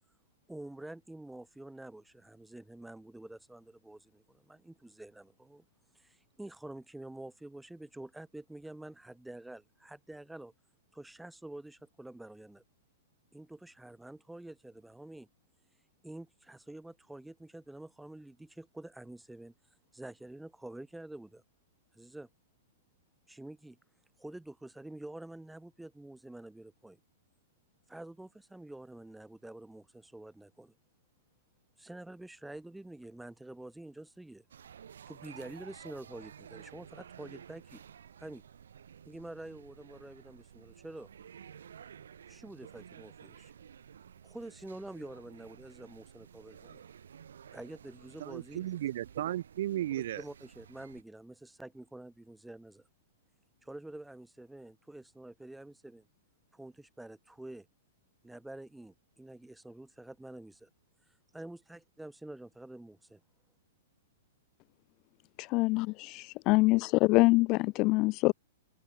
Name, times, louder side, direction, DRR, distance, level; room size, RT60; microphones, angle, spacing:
voice 1, 0.5-5.6 5.9-10.5 10.9-12.6 13.3-15.3 16.0-19.5 19.9-21.4 21.9-22.3 23.3-23.8 24.2-27.0 27.9-30.7 31.8-34.4 35.1-37.8 38.2-38.4 39.0-41.1 42.3-43.5 44.2-46.8 47.5-48.7 50.1-52.8 53.6-56.1 56.5-57.7 58.2-60.7 61.1-63.2, right 1 dB, 5° right, 4.5 m, -48 dB
sound 1, 34.5-51.0, right 8 dB, 85° right, 4.8 m, -53 dB
voice 2, 48.2-50.2, right 13 dB, 65° right, 0.6 m, -34 dB
voice 3, 65.5-68.3, left 23 dB, 35° left, 0.4 m, -25 dB
hypercardioid pair, 140°, 0 cm